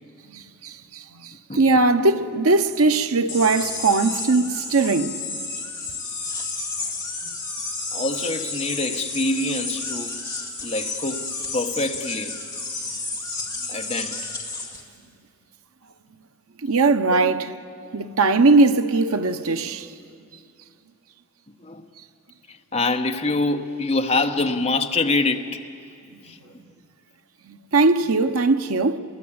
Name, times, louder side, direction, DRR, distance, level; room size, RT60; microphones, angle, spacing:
voice 1, 0.3-5.2 16.6-17.5 17.9-19.9 27.5-29.0, right 3 dB, 80° right, 0.9 m, -20 dB
sound 1, 3.3-14.8, left 3 dB, 15° left, 2.0 m, -31 dB
voice 2, 7.9-10.1 10.6-12.4 13.7-14.3 17.1-17.4 21.6-21.9 22.5-25.6 26.2-26.4, left 2 dB, 30° left, 1.1 m, -25 dB
29.5 x 22.5 x 8.7 m
head